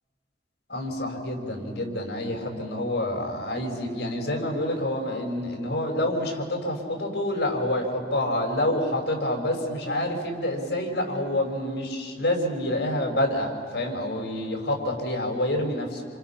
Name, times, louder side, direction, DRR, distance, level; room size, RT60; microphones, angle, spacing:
voice 1, 0.7-16.1, left 1 dB, 65° left, 1 dB, 5.9 m, -27 dB
29.0 x 28.5 x 6.0 m, 2.1 s
head